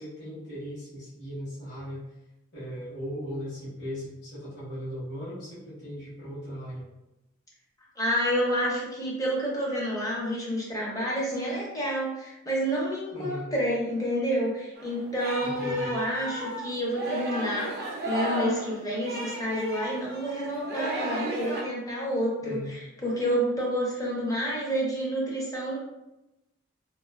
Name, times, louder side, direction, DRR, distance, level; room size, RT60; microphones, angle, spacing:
voice 1, 0.0-2.0 2.5-6.9 13.1-13.5 15.4-15.9 22.4-22.7, equal, 50° left, -10 dB, 1.0 m, -38 dB
voice 2, 8.0-25.8, equal, 15° left, -4 dB, 0.6 m, -29 dB
Singing, 14.8-21.6, right 1 dB, 50° right, 0.4 m, -34 dB
2.4 x 2.4 x 2.3 m, 0.94 s
head